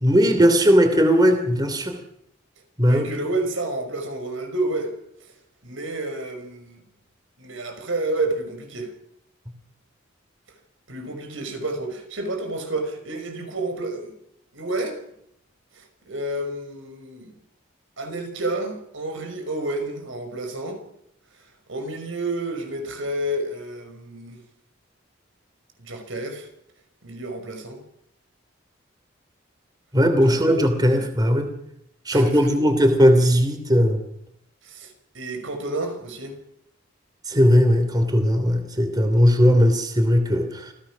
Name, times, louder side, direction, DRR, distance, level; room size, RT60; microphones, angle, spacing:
voice 1, 0.0-2.0 2.8-3.1 29.9-31.5 32.1-34.0 37.3-40.7, equal, 20° right, 6 dB, 3.0 m, -18 dB
voice 2, 2.8-4.9 5.6-6.8 7.4-8.9 10.9-14.1 14.5-15.0 15.7-17.3 18.0-20.8 21.7-24.4 25.8-26.5 27.0-27.8 30.2-30.6 30.9-31.0 32.1-32.7 34.6-36.4, right 2 dB, 80° right, 5 dB, 5.6 m, -30 dB
28.0 x 16.5 x 6.3 m, 0.74 s
head